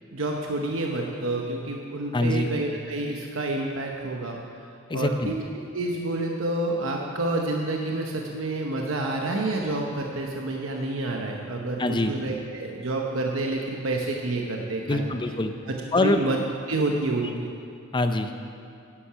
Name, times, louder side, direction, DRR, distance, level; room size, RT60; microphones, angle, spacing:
voice 1, 0.1-4.4 4.9-5.4 5.7-15.1 15.7-16.4 16.7-17.3, right 2 dB, 85° right, 1 dB, 0.9 m, -28 dB
voice 2, 2.1-2.5 4.9-5.3 11.8-12.1 14.9-15.5 15.9-16.2 17.9-18.3, left 2 dB, 25° left, 7 dB, 0.5 m, -24 dB
9.6 x 8.7 x 5.7 m, 2.5 s
head